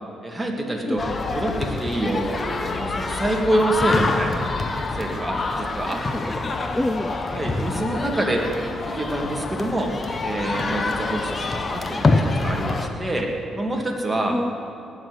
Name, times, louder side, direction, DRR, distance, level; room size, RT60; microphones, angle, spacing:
voice 1, 0.2-1.0 1.3-4.5 4.9-6.4 7.3-8.5 8.8-9.9 10.2-14.4, right 1 dB, 10° right, 0 dB, 2.4 m, -26 dB
sound 1, 1.0-12.9, left 3 dB, 35° left, 1.3 m, -26 dB
voice 2, 6.1-7.2 14.3-14.5, left 1 dB, 15° left, 8 dB, 0.6 m, -27 dB
18.5 x 7.4 x 9.8 m, 2.8 s
cardioid pair, 90°, 0 cm